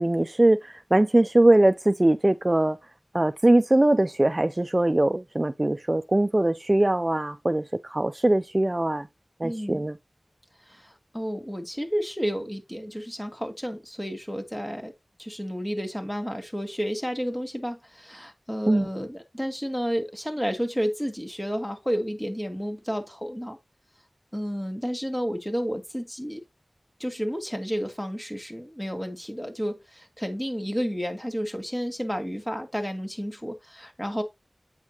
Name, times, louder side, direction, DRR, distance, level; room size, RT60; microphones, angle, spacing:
voice 1, 0.0-2.8 3.1-9.1 9.4-10.0 18.7-18.9, right 1 dB, 35° right, 0.4 m, -21 dB
voice 2, 9.4-9.8 10.7-14.9 15.2-23.6 24.3-26.4 27.0-34.2, equal, 10° left, 2.1 m, -31 dB
8.3 x 6.4 x 2.9 m
wide cardioid pair, 55°, 0 cm